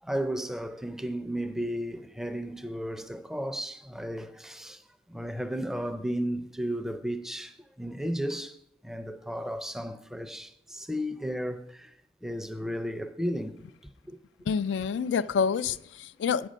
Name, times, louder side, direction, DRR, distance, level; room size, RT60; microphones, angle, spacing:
voice 1, 0.0-4.8 5.1-8.6 8.8-11.9 12.2-13.6 13.8-14.2, equal, 5° right, 0.4 m, -34 dB
voice 2, 14.5-16.5, left 6 dB, 90° left, 0.3 m, -27 dB
8.2 x 6.3 x 5.1 m
head